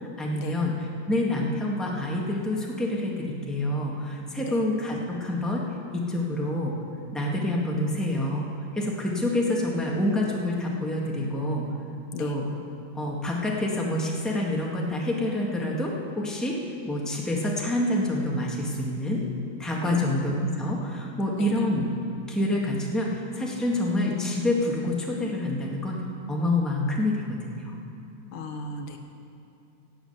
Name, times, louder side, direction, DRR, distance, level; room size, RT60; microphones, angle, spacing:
voice 1, 0.0-5.6 5.9-6.7 7.1-8.4 8.7-11.7 12.2-12.4 12.9-16.6 16.8-19.2 19.6-21.9 22.3-26.0 26.3-27.7, left 1 dB, ahead, -2 dB, 1.6 m, -27 dB
voice 2, 28.3-29.0, left 3 dB, 85° left, 5 dB, 2.0 m, -36 dB
17.5 x 7.9 x 8.0 m, 2.8 s
omnidirectional pair, 2.3 m